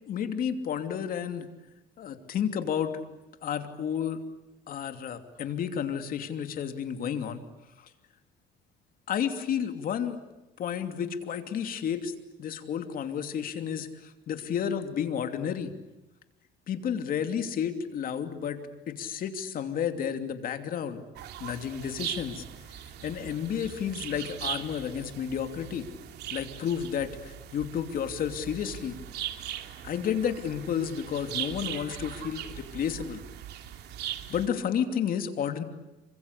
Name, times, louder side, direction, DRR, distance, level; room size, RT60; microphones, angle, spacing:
voice 1, 0.1-1.5 2.0-2.9 3.4-4.2 4.7-7.4 7.8-7.9 9.1-10.2 10.6-12.1 12.4-15.7 16.7-18.6 18.9-21.0 21.4-22.4 23.0-25.9 26.3-29.0 29.8-33.2 34.3-35.6, left 8 dB, 60° left, 7 dB, 2.9 m, -31 dB
sound 1, 21.2-34.5, right 11 dB, 75° right, 3.0 m, -40 dB
28.0 x 25.0 x 8.4 m, 0.99 s
cardioid pair, 110°, 17 cm